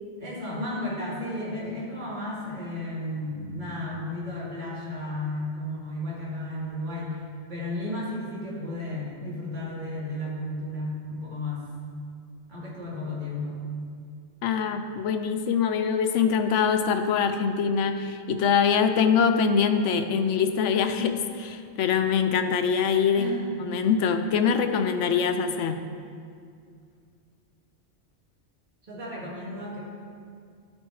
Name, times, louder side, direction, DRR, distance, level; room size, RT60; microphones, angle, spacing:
voice 1, 0.2-7.2 7.5-11.7 12.5-13.7 23.1-23.6 28.8-29.8, left 1 dB, 40° right, -7 dB, 2.1 m, -33 dB
voice 2, 14.4-23.3 23.6-25.8, left 6 dB, 85° left, 7 dB, 0.9 m, -24 dB
13.0 x 4.4 x 4.7 m, 2.2 s
omnidirectional pair, 1.2 m